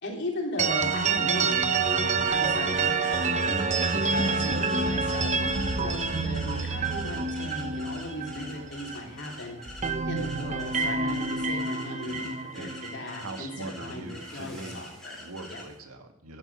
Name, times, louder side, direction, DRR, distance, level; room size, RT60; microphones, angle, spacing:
voice 1, 0.0-3.4 3.9-9.6 10.1-15.2 15.5-15.6, left 1 dB, 55° left, -1 dB, 3.7 m, -37 dB
sound 1, 0.6-9.3 9.6-13.7, right 4 dB, 35° right, 0.8 m, -28 dB
sound 2, 0.7-15.8, left 1 dB, ahead, 4.1 m, -46 dB
sound 3, 9.0-11.7, equal, 65° right, 4.6 m, -49 dB
voice 2, 13.2-14.9 15.1-16.4, right 2 dB, 90° right, 5 dB, 1.8 m, -41 dB
11.5 x 8.8 x 7.6 m, 0.77 s
head